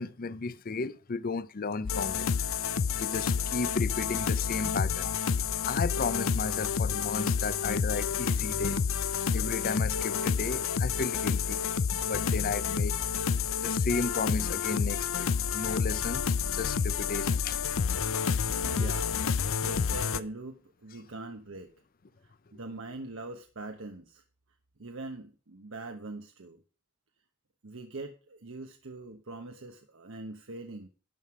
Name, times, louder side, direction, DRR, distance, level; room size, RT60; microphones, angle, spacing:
voice 1, 0.0-2.3 3.0-5.2 5.7-8.8 9.3-11.6 11.9-13.0 13.6-15.3 15.5-16.2 16.5-17.6 18.8-18.9, left 4 dB, 45° left, 0.6 m, -34 dB
sound 1, 1.8-20.2, left 6 dB, 90° left, 0.6 m, -29 dB
voice 2, 18.6-21.7 22.2-24.2 24.8-26.6 27.6-30.9, right 2 dB, 75° right, 1.0 m, -42 dB
12.0 x 7.5 x 4.8 m
head